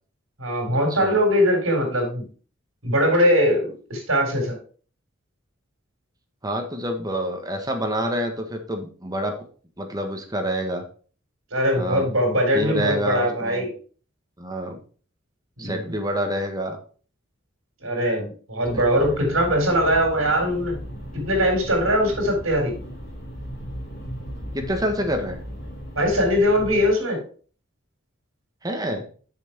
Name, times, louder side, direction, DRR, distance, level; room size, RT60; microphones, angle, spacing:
voice 1, 0.4-2.3 2.8-4.6 11.5-13.7 15.6-15.8 17.8-20.8 21.1-22.7 26.0-27.2, equal, 75° right, 2 dB, 4.0 m, -21 dB
voice 2, 0.9-1.2 6.4-9.4 9.8-10.8 11.7-12.1 12.5-13.7 14.4-14.8 15.6-16.8 24.5-25.4 28.6-29.0, equal, 20° right, 4 dB, 1.5 m, -27 dB
sound 1, 18.6-26.9, equal, 55° left, 3.2 m, -36 dB
7.2 x 6.1 x 4.5 m, 0.41 s
head